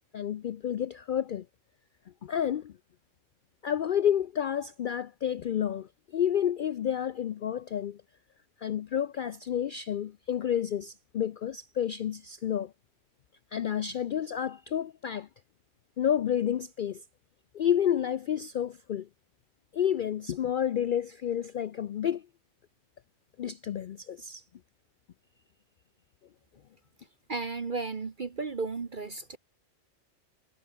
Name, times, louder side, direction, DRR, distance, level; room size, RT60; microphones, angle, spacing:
voice 1, 0.1-1.4 2.2-2.7 3.6-8.0 8.6-12.7 13.5-15.3 16.0-17.0 17.5-19.1 19.7-22.2 23.4-24.4, left 9 dB, 70° left, 0.5 m, -30 dB
voice 2, 27.3-29.4, right 4 dB, 40° right, 1.2 m, -34 dB
omnidirectional pair, 1.4 m